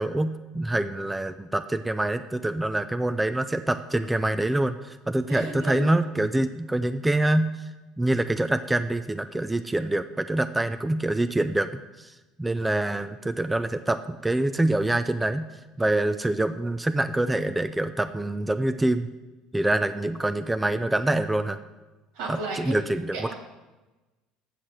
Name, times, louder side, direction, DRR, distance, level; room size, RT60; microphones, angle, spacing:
voice 1, 0.0-7.7 8.0-11.7 12.0-15.5 15.8-19.1 19.5-21.6 22.3-23.3, right 1 dB, 10° right, 10 dB, 0.4 m, -25 dB
voice 2, 5.3-5.9 22.1-22.8 23.1-23.3, right 2 dB, 80° right, 1 dB, 2.3 m, -33 dB
7.6 x 6.5 x 5.8 m, 1.1 s
supercardioid pair, 100°, 0 cm